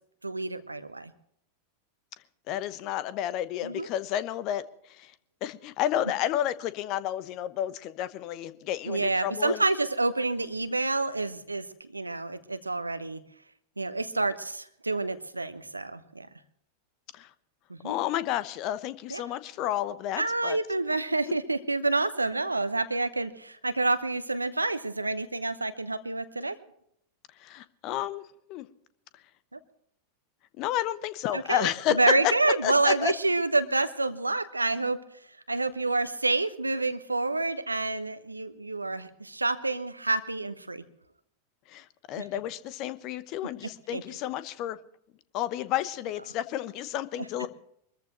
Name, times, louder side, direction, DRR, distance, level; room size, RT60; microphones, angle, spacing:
voice 1, 0.2-1.1 3.6-3.9 8.8-13.2 13.8-16.3 17.7-17.9 19.1-19.2 20.2-26.6 29.5-29.6 31.3-35.0 35.5-40.8 42.2-42.3 43.9-44.0, right 2 dB, 80° right, 13 dB, 1.0 m, -28 dB
voice 2, 2.5-4.6 5.0-5.1 5.4-9.6 17.1-17.3 17.8-20.6 21.2-21.3 27.4-28.2 28.5-28.7 30.6-31.9 32.2-32.3 32.6-33.1 41.7-44.8 45.3-47.5, left 12 dB, 40° left, 15 dB, 1.0 m, -31 dB
24.0 x 14.0 x 3.1 m, 0.70 s
figure-of-eight pair, 90°, 0 cm